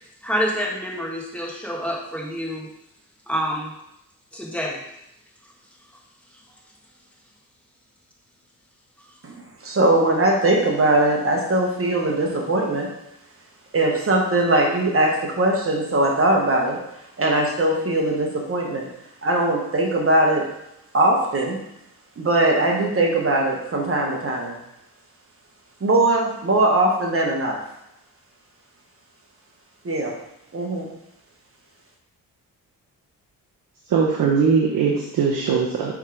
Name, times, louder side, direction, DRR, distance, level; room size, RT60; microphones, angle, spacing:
voice 1, 0.2-2.7 3.3-3.7 4.3-4.8, equal, 5° left, -3 dB, 1.9 m, -27 dB
voice 2, 9.2-12.9 13.7-16.8 17.2-18.9 19.2-20.4 20.9-21.6 22.2-24.6 25.8-27.6 29.8-30.1 30.5-30.9, right 2 dB, 40° right, 0 dB, 1.3 m, -20 dB
voice 3, 33.9-35.9, right 5 dB, 70° right, -3 dB, 0.9 m, -20 dB
5.4 x 3.7 x 4.9 m, 0.83 s
cardioid pair, 70°, 36 cm